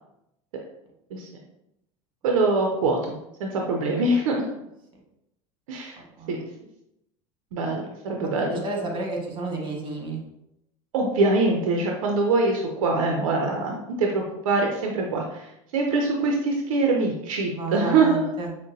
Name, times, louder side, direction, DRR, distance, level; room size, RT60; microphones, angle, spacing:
voice 1, 2.2-4.5 5.7-6.0 6.3-6.4 7.5-8.6 10.9-18.2, right 3 dB, 75° right, 1 dB, 0.6 m, -24 dB
voice 2, 8.5-10.2 17.4-18.5, right 2 dB, 30° right, 0 dB, 1.5 m, -31 dB
5.9 x 2.1 x 2.6 m, 0.83 s
hypercardioid pair, 85°, 17 cm